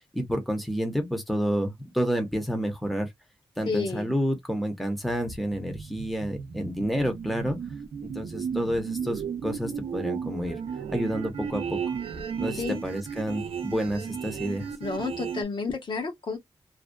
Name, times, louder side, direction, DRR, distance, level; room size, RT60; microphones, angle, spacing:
voice 1, 0.1-3.1 3.6-7.6 8.0-10.6 10.9-11.8 12.4-14.7, equal, ahead, 0.8 m, -29 dB
voice 2, 3.6-4.1 12.6-12.8 14.8-16.4, left 4 dB, 55° left, 1.0 m, -31 dB
sound 1, 5.0-15.4, right 7 dB, 85° right, 0.5 m, -35 dB
2.5 x 2.2 x 2.2 m
wide cardioid pair, 100°, 10 cm